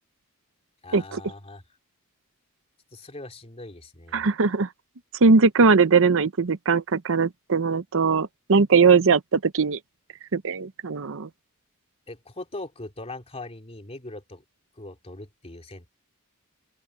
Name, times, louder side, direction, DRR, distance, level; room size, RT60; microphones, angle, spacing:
voice 1, 0.8-1.6 2.9-4.3 12.1-14.4 14.8-15.9, left 2 dB, 30° left, 3.1 m, -40 dB
voice 2, 4.1-4.7 5.2-9.8 10.3-11.3, right 4 dB, 65° right, 0.8 m, -20 dB
open air
head